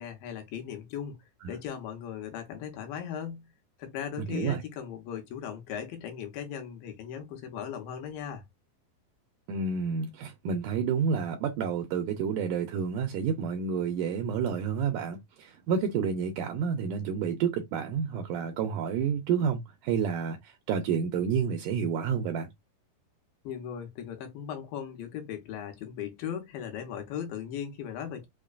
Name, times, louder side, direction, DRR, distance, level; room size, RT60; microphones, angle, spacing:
voice 1, 0.0-3.5 3.8-8.5 23.4-28.3, left 8 dB, 75° left, 2.6 m, -38 dB
voice 2, 4.2-4.6 9.5-22.5, right 6 dB, 80° right, 1.9 m, -29 dB
5.7 x 2.2 x 2.4 m
omnidirectional pair, 4.1 m